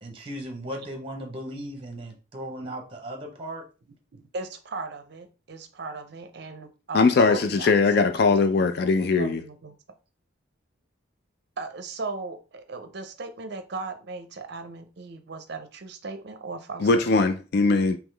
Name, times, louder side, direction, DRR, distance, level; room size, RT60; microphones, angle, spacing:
voice 1, 0.0-3.6, equal, 25° right, 0.8 m, -37 dB
voice 2, 4.1-7.0 7.3-8.2 8.8-8.9 9.2-9.7 11.6-17.0, right 3 dB, 55° right, 0.5 m, -37 dB
voice 3, 6.9-9.4 16.8-18.0, left 4 dB, 50° left, 0.3 m, -20 dB
3.7 x 3.0 x 3.3 m
head